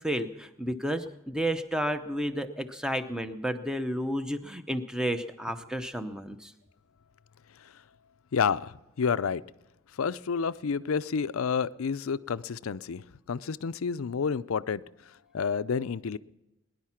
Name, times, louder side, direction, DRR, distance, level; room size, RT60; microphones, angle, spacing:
voice 1, 0.0-6.5, equal, 5° right, 0.7 m, -31 dB
voice 2, 8.3-8.7 9.0-9.4 10.0-14.8 15.3-16.2, left 6 dB, 90° left, 0.5 m, -29 dB
21.5 x 11.0 x 5.8 m
head